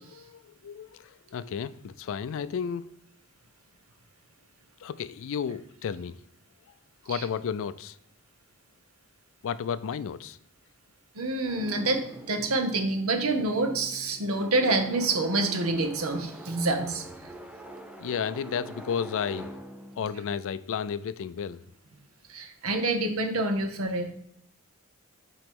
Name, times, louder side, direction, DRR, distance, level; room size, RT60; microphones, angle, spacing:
voice 1, 0.1-2.9 4.8-6.2 7.0-8.0 9.4-10.4 18.0-19.5 20.0-21.6, left 7 dB, 60° left, 0.3 m, -32 dB
voice 2, 11.2-17.0 22.3-24.1, right 2 dB, 65° right, 1.0 m, -27 dB
sound 1, 11.4-21.4, right 1 dB, 5° right, 0.5 m, -44 dB
7.5 x 3.1 x 5.2 m
head